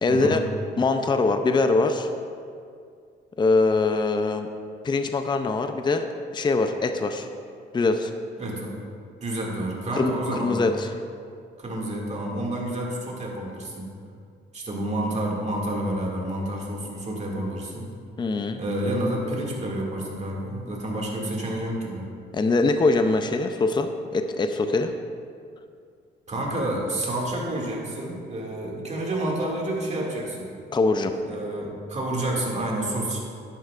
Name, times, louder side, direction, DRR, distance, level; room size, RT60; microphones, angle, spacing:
voice 1, 0.0-0.4 0.8-2.1 3.4-4.5 4.8-6.1 6.3-7.3 7.7-8.1 9.9-10.9 18.2-18.6 22.3-24.9 30.7-31.1, left 3 dB, 25° left, 7 dB, 0.5 m, -23 dB
voice 2, 8.4-8.7 9.2-10.6 11.6-13.9 14.5-17.9 18.6-22.1 26.3-30.5 31.2-33.2, right 1 dB, 35° right, -2 dB, 2.2 m, -29 dB
11.0 x 9.9 x 2.5 m, 2.3 s
cardioid pair, 90°, 20 cm